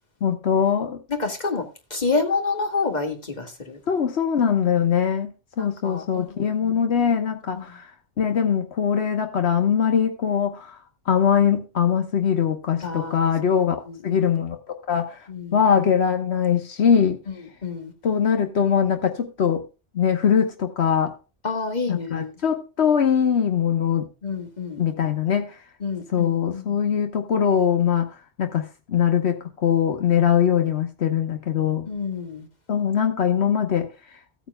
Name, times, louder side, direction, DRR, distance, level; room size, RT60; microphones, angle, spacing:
voice 1, 0.2-1.0 3.9-7.9 8.2-10.8 11.1-13.7 14.0-15.2 15.5-17.2 18.0-19.6 19.9-21.1 21.9-24.1 24.8-25.6 26.1-28.1 28.4-31.9 32.7-33.9, left 8 dB, 85° left, 1.3 m, -22 dB
voice 2, 1.2-1.7 1.9-3.8 5.6-6.8 7.5-7.8 12.8-13.3 13.9-14.3 15.3-15.6 17.6-17.9 21.4-22.3 24.2-24.8 25.8-26.7 31.9-32.5, left 4 dB, 40° left, 2.1 m, -28 dB
16.0 x 8.9 x 2.2 m
omnidirectional pair, 1.1 m